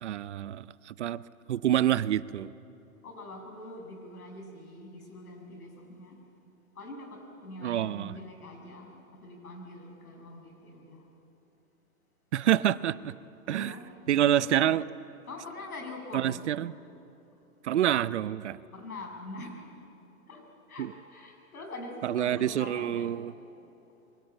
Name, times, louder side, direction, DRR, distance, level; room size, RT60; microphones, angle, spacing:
voice 1, 0.0-1.2 1.5-2.5 7.6-8.2 12.3-13.1 13.5-13.8 14.1-14.8 16.1-16.7 17.6-18.6 20.8-20.9 22.0-23.3, right 11 dB, 55° right, 17 dB, 0.6 m, -27 dB
voice 2, 3.0-6.2 6.8-11.0 13.5-13.9 14.4-14.5 15.3-16.5 18.7-19.6 20.3-20.4 20.7-23.1, left 2 dB, 85° left, 3 dB, 6.9 m, -44 dB
25.5 x 23.5 x 8.9 m, 2.9 s
hypercardioid pair, 165°, 43 cm